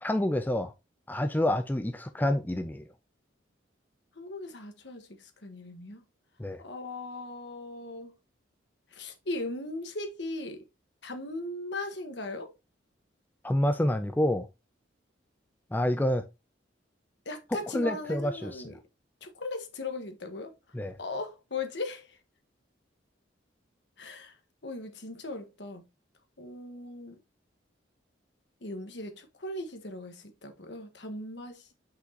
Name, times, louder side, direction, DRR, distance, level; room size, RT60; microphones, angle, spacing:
voice 1, 0.0-0.7 1.1-2.8 6.4-6.6 13.4-14.5 15.7-16.2 17.7-18.8 20.7-21.0, left 1 dB, 10° left, 0.4 m, -28 dB
voice 2, 4.1-6.0 6.6-8.1 8.9-10.6 11.0-12.5 17.2-18.8 19.2-20.5 21.0-22.2 24.0-24.4 24.6-25.8 26.4-27.2 28.6-31.7, left 2 dB, 65° left, 1.4 m, -38 dB
5.9 x 5.8 x 2.8 m
head